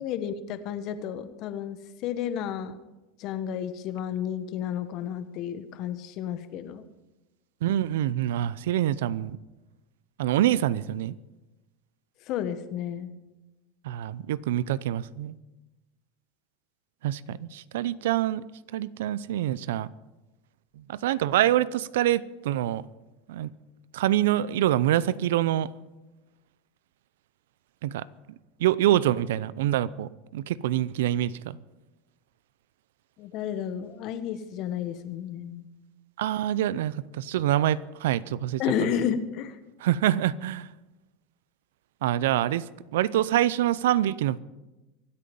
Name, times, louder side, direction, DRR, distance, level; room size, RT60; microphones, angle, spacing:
voice 1, 0.0-2.8 3.2-6.8 12.3-13.1 33.2-35.6 38.6-39.6, left 9 dB, 55° left, 11 dB, 1.4 m, -32 dB
voice 2, 7.6-9.4 10.2-11.1 13.8-15.4 17.0-18.4 18.7-19.9 20.9-22.9 23.3-23.5 23.9-25.7 27.8-28.1 28.6-31.6 36.2-38.6 39.8-40.7 42.0-42.6 42.9-44.4, right 12 dB, 80° right, 20 dB, 0.6 m, -25 dB
24.5 x 8.7 x 5.4 m, 1.1 s
hypercardioid pair, 100°, 0 cm